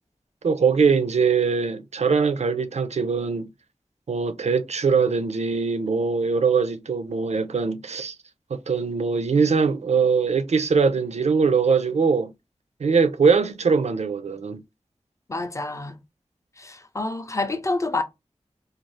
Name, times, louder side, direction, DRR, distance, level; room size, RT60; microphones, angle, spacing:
voice 1, 0.4-3.5 4.1-8.2 8.5-12.3 12.8-14.6, right 5 dB, 70° right, 0.4 m, -22 dB
voice 2, 15.3-16.0 16.6-18.0, left 2 dB, 25° left, 0.5 m, -28 dB
2.4 x 2.3 x 3.1 m
wide cardioid pair, 50°, 12 cm